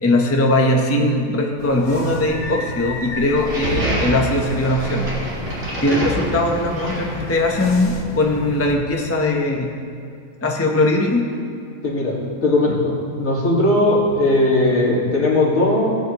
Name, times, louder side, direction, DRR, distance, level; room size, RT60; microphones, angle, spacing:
voice 1, 0.0-5.1 5.8-9.7 10.4-11.3, left 1 dB, 10° left, 1 dB, 0.8 m, -20 dB
sound 1, 1.6-8.7, left 2 dB, 85° left, 1.9 m, -33 dB
sound 2, 3.4-7.7, right 1 dB, 60° right, 3.7 m, -27 dB
voice 2, 11.8-16.0, left 1 dB, 60° left, -4 dB, 2.5 m, -18 dB
18.5 x 8.9 x 3.0 m, 2.5 s
omnidirectional pair, 1.6 m